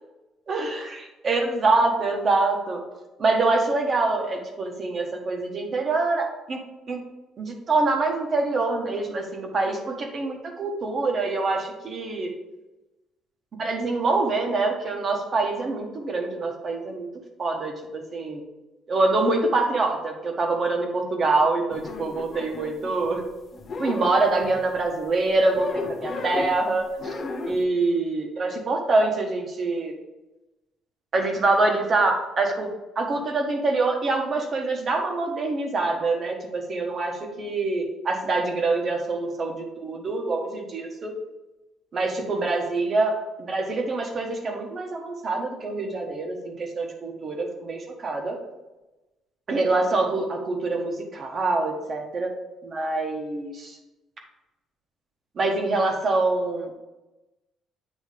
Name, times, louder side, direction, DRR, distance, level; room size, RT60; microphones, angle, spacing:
voice 1, 0.5-2.8 3.2-6.6 6.9-7.0 7.4-12.3 13.6-17.1 17.4-18.4 18.9-23.2 23.8-27.2 27.5-29.9 31.1-32.7 32.9-41.1 41.9-48.4 49.5-52.3 52.6-53.8 55.3-56.7, right 3 dB, 40° right, 3 dB, 1.3 m, -25 dB
sound 1, 21.7-23.3 23.5-24.8 25.5-26.6 27.0-27.6, left 3 dB, 40° left, 0.8 m, -34 dB
8.5 x 3.1 x 5.0 m, 1.0 s
cardioid pair, 115°, 0 cm